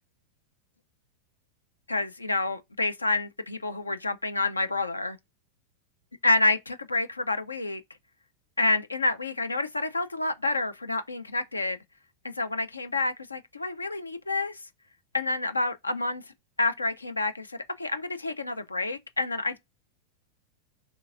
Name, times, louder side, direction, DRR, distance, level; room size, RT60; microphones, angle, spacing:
voice 1, 1.9-5.2 6.2-7.8 8.6-11.8 12.2-14.6 15.1-16.2 16.6-19.6, left 2 dB, 80° left, 0.3 m, -28 dB
3.1 x 2.8 x 2.3 m
figure-of-eight pair, 90°, 0 cm